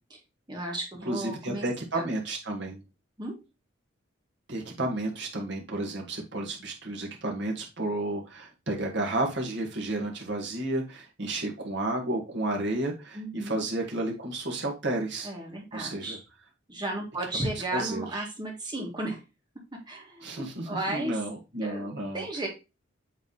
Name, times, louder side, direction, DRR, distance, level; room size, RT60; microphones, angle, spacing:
voice 1, 0.5-1.7 1.9-2.0 3.2-3.3 13.1-13.6 15.2-16.2 16.7-19.2 19.9-21.2 21.6-21.9 22.1-22.5, right 1 dB, 20° right, 0 dB, 1.9 m, -34 dB
voice 2, 1.1-2.8 4.5-15.3 15.7-16.2 17.3-18.3 20.2-22.3, right 2 dB, 60° right, 0 dB, 1.8 m, -32 dB
8.3 x 3.6 x 4.0 m, 0.27 s
head